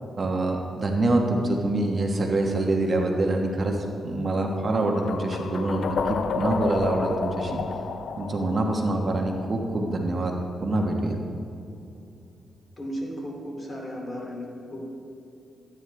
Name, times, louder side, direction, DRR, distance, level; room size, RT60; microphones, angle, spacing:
voice 1, 0.2-3.8 4.0-6.0 6.4-7.6 8.2-10.3 10.6-11.2, right 2 dB, 45° right, 2 dB, 1.2 m, -25 dB
sound 1, 4.9-9.9, left 5 dB, 65° left, 0.5 m, -31 dB
voice 2, 12.8-14.9, equal, 35° left, -1 dB, 2.6 m, -35 dB
13.0 x 9.2 x 3.4 m, 2.6 s
cardioid pair, 70°, 0 cm